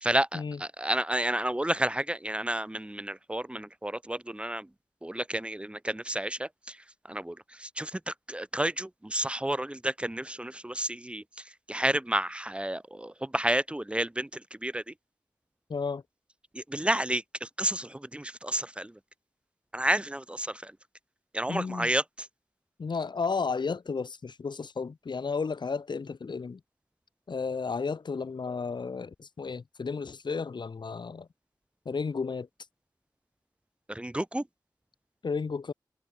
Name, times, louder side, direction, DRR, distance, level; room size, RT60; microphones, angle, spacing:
voice 1, 0.0-4.7 5.0-6.5 7.1-11.2 11.7-14.3 14.6-14.8 16.5-18.9 19.7-20.7 21.3-22.0 33.9-34.4, right 1 dB, 15° right, 1.7 m, -30 dB
voice 2, 15.7-16.0 21.5-21.9 22.8-26.6 27.3-31.3 31.8-32.5 35.2-35.7, left 5 dB, 75° left, 1.6 m, -33 dB
wide cardioid pair, 80°, 8 cm